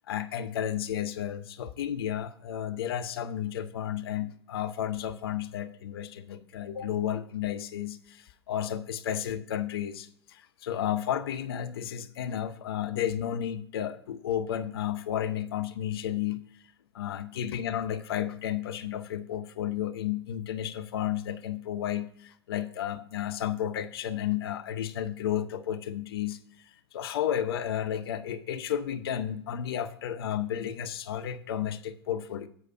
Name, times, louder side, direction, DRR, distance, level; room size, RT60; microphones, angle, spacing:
voice 1, 0.1-16.4 16.9-32.5, left 10 dB, 60° left, 9 dB, 0.8 m, -32 dB
8.5 x 4.9 x 5.3 m, 0.64 s
figure-of-eight pair, 100°, 14 cm